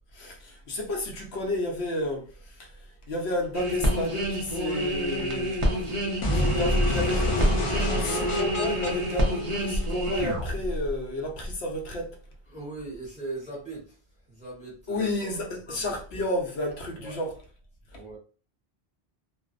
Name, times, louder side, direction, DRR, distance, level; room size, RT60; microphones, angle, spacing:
voice 1, 0.1-2.7 3.1-6.0 6.3-12.2 14.9-17.4, left 1 dB, 80° left, 0.9 m, -32 dB
sound 1, 3.5-11.0 11.4-11.6, equal, 40° right, 0.5 m, -28 dB
sound 2, 6.2-10.2, left 1 dB, 45° left, 0.4 m, -28 dB
voice 2, 12.5-14.0 14.3-16.2 16.9-17.2 17.9-18.2, right 2 dB, 5° right, 0.9 m, -40 dB
2.5 x 2.0 x 2.4 m
omnidirectional pair, 1.1 m